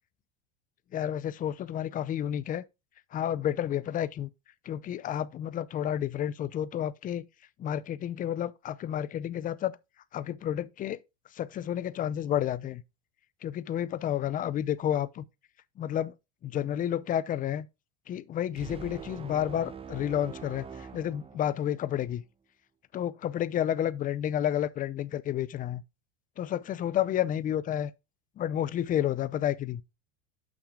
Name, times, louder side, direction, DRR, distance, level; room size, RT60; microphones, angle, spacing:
voice 1, 0.9-2.6 3.1-4.3 4.7-7.2 7.6-9.8 10.1-11.0 11.3-12.8 13.4-15.2 15.8-16.1 16.4-17.7 18.1-22.2 22.9-25.8 26.4-27.9 28.4-29.8, left 10 dB, 25° left, 0.4 m, -30 dB
sound 1, 18.5-22.0, right 6 dB, 15° right, 0.7 m, -44 dB
6.4 x 6.0 x 3.6 m
supercardioid pair, 120°, 37 cm